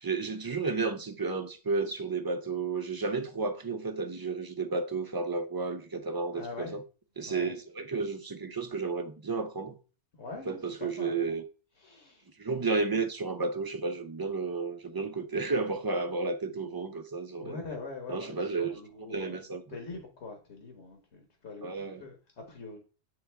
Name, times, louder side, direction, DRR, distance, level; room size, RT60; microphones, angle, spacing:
voice 1, 0.0-6.8 7.2-9.8 10.5-11.4 12.4-17.6 18.1-18.8 19.1-19.8 21.6-22.0, right 4 dB, 30° right, 0.4 m, -32 dB
voice 2, 6.3-6.8 7.2-7.5 10.1-11.4 11.8-12.3 17.4-19.4 19.7-22.8, left 4 dB, 70° left, 1.5 m, -43 dB
8.8 x 3.5 x 3.4 m
omnidirectional pair, 1.2 m